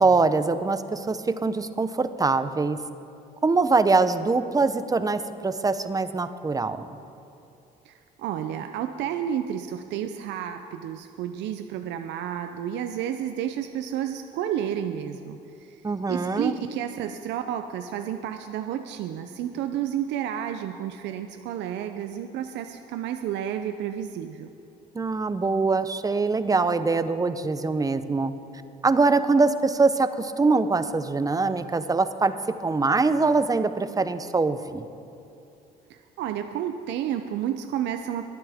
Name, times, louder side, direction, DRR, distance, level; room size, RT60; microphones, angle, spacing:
voice 1, 0.0-2.8 3.4-6.9 15.8-16.5 24.9-28.3 28.8-32.3 32.6-34.9, right 3 dB, 20° right, 12 dB, 0.7 m, -23 dB
voice 2, 7.8-15.8 16.1-24.5 35.9-38.3, right 10 dB, 75° right, 7 dB, 0.6 m, -31 dB
22.5 x 9.2 x 3.6 m, 2.7 s
supercardioid pair, 85°, 18 cm